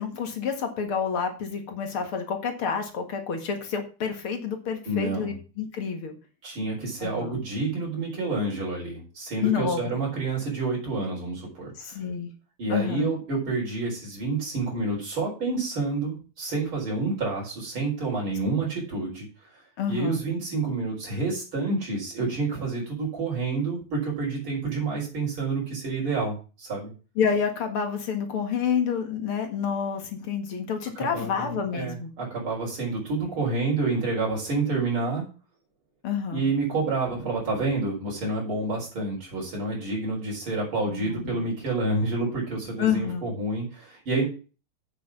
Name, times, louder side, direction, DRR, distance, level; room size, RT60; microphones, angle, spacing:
voice 1, 0.0-6.2 7.0-7.4 9.4-9.9 11.8-12.3 12.7-13.1 18.6-18.7 19.8-20.2 27.2-32.1 36.0-36.4 40.9-41.4 42.8-43.2, left 7 dB, 75° left, 5 dB, 2.6 m, -29 dB
voice 2, 4.9-5.4 6.4-12.0 12.6-19.6 19.9-26.9 31.0-35.2 36.3-44.2, right 3 dB, 70° right, -3 dB, 5.2 m, -29 dB
8.2 x 6.8 x 6.0 m, 0.35 s
omnidirectional pair, 2.4 m